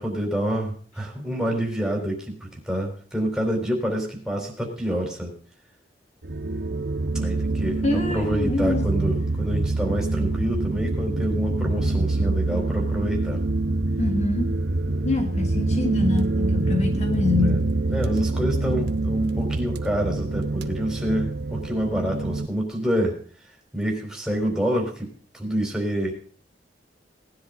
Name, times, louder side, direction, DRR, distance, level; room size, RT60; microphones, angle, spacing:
voice 1, 0.0-5.4 7.1-13.4 17.4-17.6 17.9-23.2 23.7-26.1, equal, 5° right, 0 dB, 4.0 m, -27 dB
sound 1, 6.2-22.5, right 2 dB, 65° right, 0.8 m, -25 dB
voice 2, 7.8-8.9 14.0-14.6 15.0-17.7, left 2 dB, 40° left, 5 dB, 1.2 m, -25 dB
18.5 x 10.5 x 3.9 m, 0.44 s
head